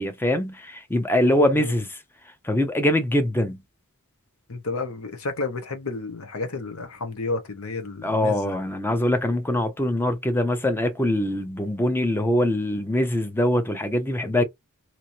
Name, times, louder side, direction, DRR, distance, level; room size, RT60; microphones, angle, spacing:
voice 1, 0.0-2.0 2.4-3.6 8.0-14.4, left 1 dB, 10° left, 0.6 m, -23 dB
voice 2, 1.4-1.7 4.5-8.6, left 3 dB, 70° left, 0.9 m, -31 dB
3.1 x 2.7 x 2.6 m
head